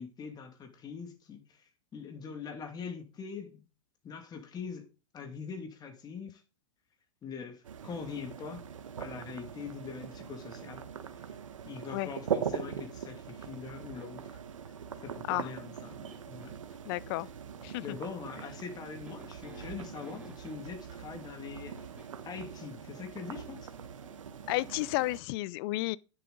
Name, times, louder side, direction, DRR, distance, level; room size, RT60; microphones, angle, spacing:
voice 1, 0.0-1.6 1.9-3.7 4.0-4.9 5.1-6.4 7.2-8.7 9.0-11.4 11.6-14.4 15.0-16.6 17.8-23.7, left 6 dB, 25° left, 2.3 m, -43 dB
sound 1, 7.6-25.2, right 8 dB, 80° right, 1.2 m, -42 dB
sound 2, 12.2-13.1 13.7-14.4 15.4-16.6 18.2-20.9 21.8-22.3 23.4-24.9, right 1 dB, 5° right, 2.8 m, -55 dB
voice 2, 16.9-17.3 17.6-17.9 24.5-26.0, left 20 dB, 50° left, 0.5 m, -32 dB
10.0 x 7.2 x 4.0 m
hypercardioid pair, 115°, 16 cm